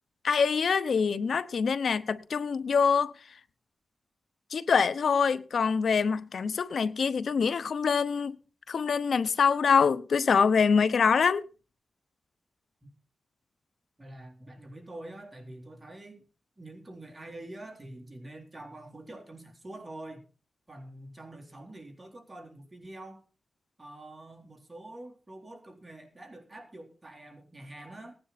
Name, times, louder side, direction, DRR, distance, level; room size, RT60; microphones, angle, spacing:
voice 1, 0.2-3.1 4.5-8.4 8.7-11.4, left 6 dB, 75° left, 0.9 m, -25 dB
voice 2, 14.0-16.3 16.6-20.2 20.7-23.2 23.8-28.2, right 1 dB, 25° right, 3.8 m, -46 dB
18.0 x 10.0 x 4.2 m
cardioid pair, 60°, 0 cm